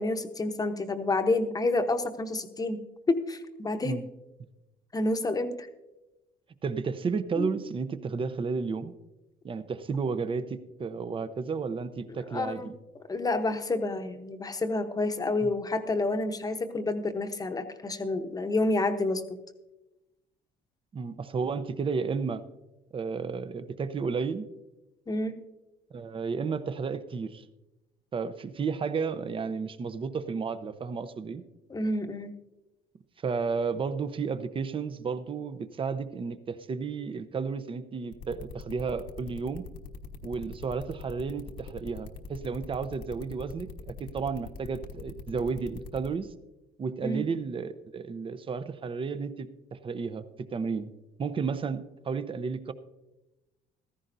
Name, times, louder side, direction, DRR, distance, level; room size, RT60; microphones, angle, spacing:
voice 1, 0.0-2.8 3.1-4.0 4.9-5.7 7.4-7.5 12.3-12.7 13.1-19.2 25.1-25.4 31.7-32.3 47.0-47.2, left 2 dB, 20° left, 7 dB, 0.9 m, -29 dB
voice 2, 6.6-8.9 9.4-12.7 15.4-15.5 20.9-22.4 22.9-24.5 25.9-27.4 28.1-31.4 33.2-39.6 40.2-46.3 46.8-50.2 50.5-50.9 51.2-52.7, right 5 dB, 30° right, 12 dB, 0.7 m, -32 dB
sound 1, 38.1-46.1, left 4 dB, 80° left, 1.4 m, -42 dB
15.0 x 14.0 x 2.7 m, 1.0 s
cardioid pair, 110°, 17 cm